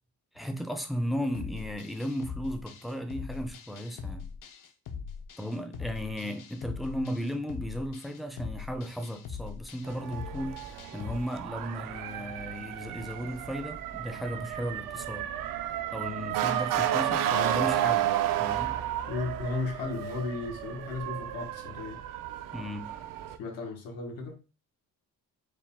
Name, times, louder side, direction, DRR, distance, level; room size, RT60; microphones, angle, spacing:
voice 1, 0.3-4.3 5.4-10.6 10.9-15.3 15.9-18.1 18.4-18.8 22.5-23.1, equal, ahead, 0.4 m, -35 dB
sound 1, 1.3-11.2, left 6 dB, 70° left, 0.7 m, -41 dB
Motor vehicle (road) / Siren, 9.8-23.4, right 11 dB, 75° right, 0.5 m, -32 dB
voice 2, 19.1-22.0 23.4-24.4, left 3 dB, 90° left, 1.2 m, -35 dB
5.0 x 2.3 x 3.4 m
cardioid pair, 140°, 34 cm